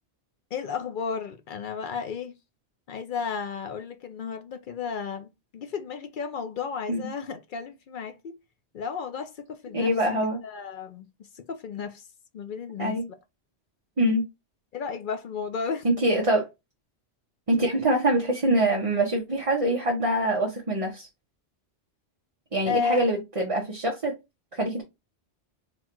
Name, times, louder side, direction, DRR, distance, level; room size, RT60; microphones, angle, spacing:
voice 1, 0.5-2.3 2.9-8.3 8.7-9.9 10.4-11.1 11.3-12.0 12.3-13.0 14.7-15.9 22.7-23.1, left 6 dB, 55° left, 0.6 m, -33 dB
voice 2, 9.7-10.4 12.8-13.1 14.0-14.2 15.8-16.5 17.5-21.1 22.5-24.1 24.5-24.8, right 1 dB, 30° right, 1.0 m, -24 dB
4.0 x 2.4 x 4.4 m
omnidirectional pair, 1.1 m